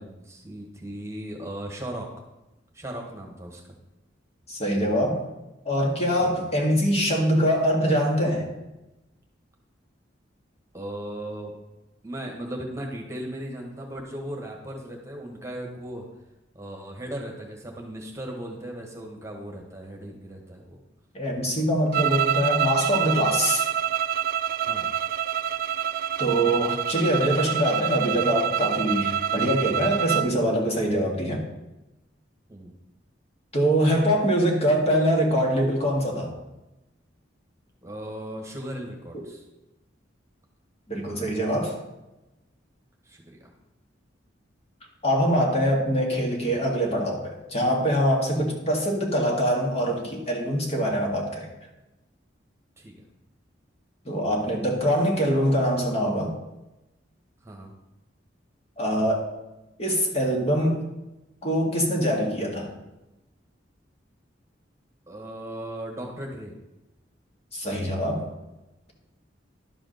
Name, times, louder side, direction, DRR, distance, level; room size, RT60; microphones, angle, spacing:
voice 1, 0.0-2.1 2.7-3.6 6.2-6.4 10.7-11.5 12.0-16.1 16.5-20.8 24.6-24.9 32.5-32.7 37.8-39.4 43.0-43.5 48.5-48.7 52.8-53.1 57.4-57.7 65.1-66.5, right 1 dB, 15° right, 1 dB, 1.5 m, -37 dB
voice 2, 4.5-5.2 5.7-8.5 21.1-23.6 26.2-31.4 33.5-36.3 39.1-39.2 40.9-41.7 45.0-51.5 54.1-56.3 58.8-59.2 59.8-60.9 61.4-62.7 67.5-68.3, equal, 35° left, 0 dB, 1.9 m, -23 dB
sound 1, 21.9-30.3, right 9 dB, 50° right, 0.4 m, -26 dB
11.5 x 5.0 x 6.5 m, 0.98 s
head